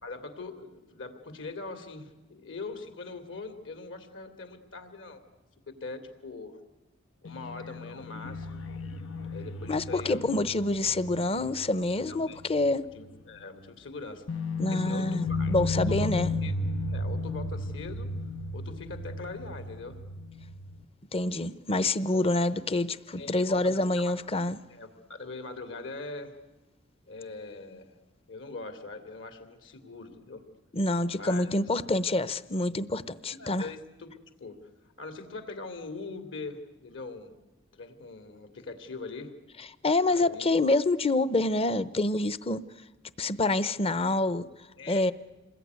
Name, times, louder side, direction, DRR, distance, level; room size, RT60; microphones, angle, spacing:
voice 1, 0.0-5.2 5.7-6.6 7.2-8.6 9.3-10.2 12.1-12.4 12.9-14.3 14.7-15.5 15.9-16.1 16.4-16.5 16.9-18.1 18.5-20.0 22.1-22.2 23.2-24.1 24.7-26.3 27.1-28.0 28.3-30.4 31.1-31.5 33.3-34.1 34.4-34.6 34.8-37.3 37.7-39.3 40.1-40.6 44.8-45.1, left 3 dB, 70° left, 8 dB, 2.9 m, -42 dB
sound 1, 7.3-12.7 13.0-13.1 14.3-20.8, left 2 dB, 85° left, 1.1 m, -34 dB
voice 2, 9.7-12.8 14.6-16.3 21.1-24.6 30.7-33.7 39.8-42.6 43.2-44.4 44.9-45.1, left 2 dB, 30° left, 16 dB, 0.8 m, -27 dB
27.5 x 21.0 x 9.5 m, 1.1 s
head